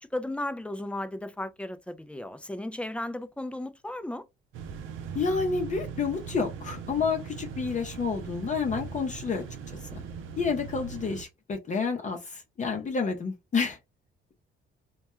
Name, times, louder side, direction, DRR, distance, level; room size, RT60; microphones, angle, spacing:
voice 1, 0.0-4.2, left 1 dB, 5° left, 0.3 m, -35 dB
sound 1, 4.5-11.2, right 6 dB, 90° right, 0.5 m, -40 dB
voice 2, 5.1-10.0 10.4-13.8, left 5 dB, 40° left, 0.6 m, -30 dB
2.2 x 2.2 x 3.0 m
cardioid pair, 90°, 20 cm